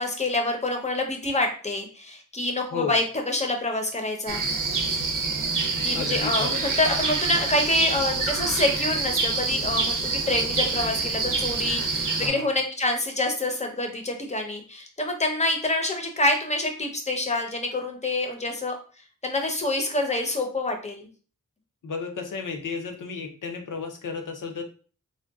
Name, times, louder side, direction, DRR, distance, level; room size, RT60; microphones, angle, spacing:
voice 1, 0.0-4.5 5.8-18.8 19.2-21.1, left 2 dB, 20° left, 3 dB, 0.6 m, -27 dB
sound 1, 4.3-12.3, right 4 dB, 85° right, 0.6 m, -26 dB
voice 2, 5.9-6.6 12.2-12.5 21.8-24.6, left 4 dB, 80° left, 4 dB, 0.7 m, -33 dB
3.8 x 2.2 x 2.3 m, 0.39 s
wide cardioid pair, 90°, 31 cm